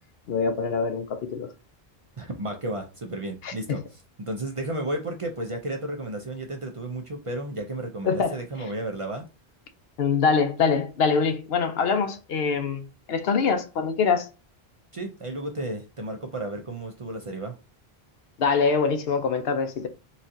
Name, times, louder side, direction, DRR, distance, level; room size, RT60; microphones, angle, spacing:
voice 1, 0.3-1.5 3.4-3.5 8.0-8.4 10.0-14.3 18.4-19.9, left 5 dB, 75° left, 0.9 m, -24 dB
voice 2, 2.2-9.2 14.9-17.5, right 1 dB, 40° right, 0.5 m, -33 dB
4.1 x 2.4 x 2.6 m
omnidirectional pair, 1.0 m